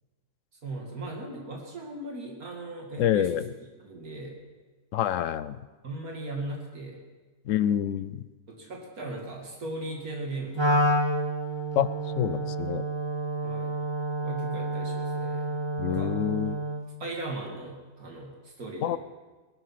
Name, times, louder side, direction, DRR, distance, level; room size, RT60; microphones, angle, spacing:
voice 1, 0.6-3.4 3.8-4.4 5.8-7.0 8.5-10.9 13.4-13.8 14.2-15.6 15.9-16.1 17.0-19.0, right 2 dB, 75° right, 0 dB, 2.5 m, -38 dB
voice 2, 3.0-3.4 4.9-5.6 7.5-8.2 11.8-11.9 12.2-12.8 15.8-16.6 18.8-19.0, left 10 dB, 65° left, 15 dB, 0.9 m, -27 dB
Wind instrument woodwind instrument, 10.5-16.9, right 1 dB, 20° right, 1.0 m, -29 dB
19.0 x 12.0 x 5.8 m, 1.3 s
omnidirectional pair, 1.5 m